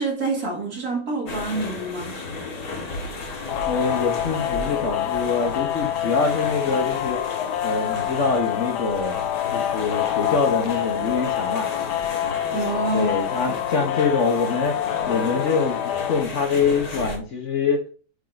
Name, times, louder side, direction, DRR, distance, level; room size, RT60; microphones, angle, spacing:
voice 1, 0.0-2.2 12.5-13.5 13.8-13.9, right 3 dB, 60° right, 2.5 m, -27 dB
sound 1, 1.3-17.2, left 3 dB, 65° left, 2.1 m, -34 dB
sound 2, 3.5-16.2, left 12 dB, 80° left, 1.2 m, -27 dB
voice 2, 3.7-7.2 7.6-9.2 9.5-11.7 12.9-14.8 15.0-17.8, left 4 dB, 50° left, 1.3 m, -24 dB
8.5 x 3.7 x 3.9 m
omnidirectional pair, 1.8 m